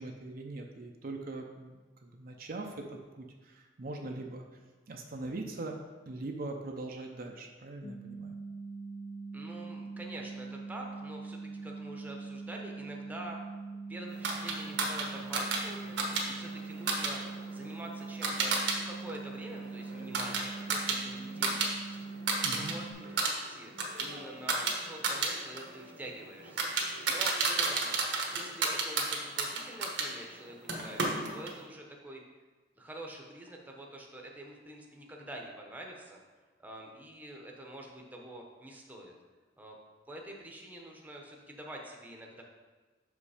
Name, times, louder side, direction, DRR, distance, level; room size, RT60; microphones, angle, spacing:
voice 1, 0.0-2.9 3.1-4.4 4.9-5.8 6.1-8.3 22.4-22.8, right 2 dB, 55° right, 2 dB, 0.6 m, -41 dB
sound 1, 7.8-22.9, right 4 dB, 85° left, 2.3 m, -42 dB
voice 2, 9.3-13.4 13.9-23.7 24.0-26.7 27.1-28.0 28.3-32.2 32.8-36.2 36.6-39.1 39.6-39.8 40.1-42.4, right 1 dB, 10° right, 0 dB, 0.9 m, -46 dB
sound 2, 14.2-18.8 19.1-21.7 22.0-22.7 23.0-30.1 30.7-31.6, right 3 dB, 80° right, 1.2 m, -32 dB
6.3 x 5.2 x 4.9 m, 1.3 s
head